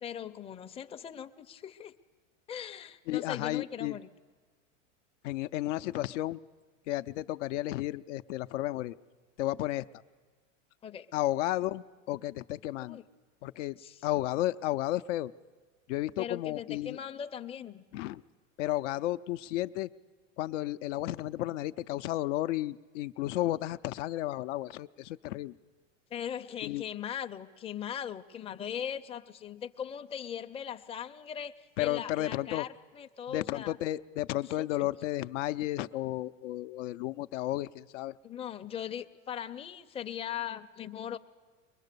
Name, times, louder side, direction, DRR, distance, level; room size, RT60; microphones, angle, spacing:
voice 1, 0.0-1.9 2.5-4.1 10.8-11.1 12.8-13.0 13.8-14.0 16.2-17.8 26.1-33.7 34.6-34.7 38.2-41.2, left 9 dB, 15° left, 7 dB, 0.5 m, -39 dB
voice 2, 3.1-4.0 5.2-6.4 6.9-8.9 9.4-9.8 11.1-13.0 13.4-13.8 14.0-15.3 15.9-17.0 17.9-18.2 18.6-19.9 20.4-25.6 26.6-26.8 31.8-32.7 33.3-38.1, left 15 dB, 70° left, 12 dB, 0.6 m, -33 dB
23.0 x 20.5 x 6.7 m, 1.4 s
hypercardioid pair, 110°, 37 cm